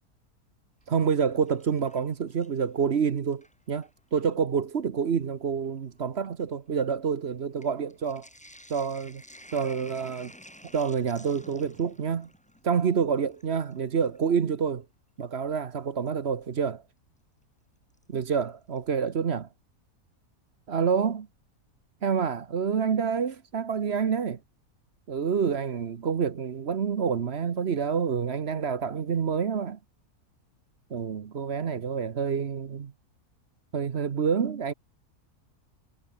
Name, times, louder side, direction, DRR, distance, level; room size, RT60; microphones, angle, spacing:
Sink (filling or washing), 0.8-2.8 3.2-4.0 4.8-4.9 5.2-14.3 16.1-16.2 18.0-18.4 18.8-18.9 19.1-19.2, equal, 5° left, 2.6 m, -53 dB
voice 1, 0.9-8.3 8.7-9.2 9.5-10.3 10.7-12.3 12.6-14.8 15.2-16.8 18.1-19.5 20.7-21.3 22.0-24.4 25.1-29.8 30.9-32.9 33.7-34.7, right 6 dB, 50° right, 1.2 m, -28 dB
omnidirectional pair, 1.6 m